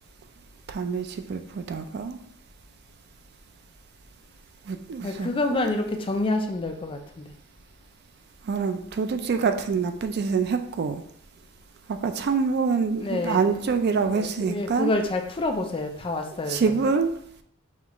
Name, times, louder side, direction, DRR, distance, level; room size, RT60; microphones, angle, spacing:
voice 1, 0.7-2.2 4.7-5.7 8.5-11.0 11.9-14.9 16.5-17.1, right 5 dB, 50° right, 8 dB, 0.3 m, -26 dB
voice 2, 5.0-7.2 12.9-16.8, left 2 dB, 25° left, 5 dB, 0.4 m, -28 dB
5.5 x 2.4 x 2.9 m, 0.67 s
head